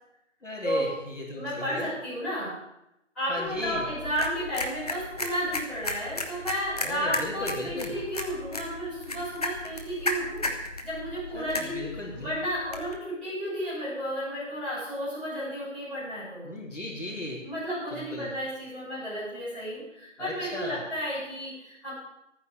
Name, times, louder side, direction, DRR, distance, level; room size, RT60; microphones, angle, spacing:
voice 1, 0.4-1.9 3.3-3.9 6.8-7.9 11.3-12.3 16.4-17.4 17.9-18.3 20.2-20.8, left 1 dB, 75° left, -1 dB, 4.0 m, -36 dB
voice 2, 1.3-2.5 3.1-10.5 10.8-16.5 17.4-21.9, equal, ahead, -19 dB, 6.8 m, -32 dB
sound 1, 3.4-13.0, left 1 dB, 30° left, 1.3 m, -35 dB
13.5 x 9.7 x 7.0 m, 0.87 s
figure-of-eight pair, 170°, 37 cm